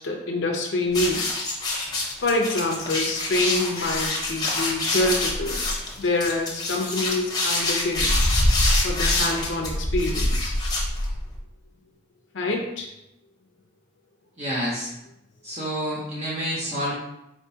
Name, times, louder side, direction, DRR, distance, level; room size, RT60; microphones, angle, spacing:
voice 1, 0.0-1.4 2.2-5.6 6.0-8.1 8.8-10.5 12.3-12.9, left 2 dB, 80° left, 0 dB, 0.6 m, -26 dB
sound 1, 0.9-11.4, left 2 dB, 20° left, 0.8 m, -25 dB
voice 2, 14.4-14.9 15.4-16.9, equal, 35° right, -6 dB, 0.7 m, -28 dB
4.5 x 3.5 x 2.8 m, 0.85 s
head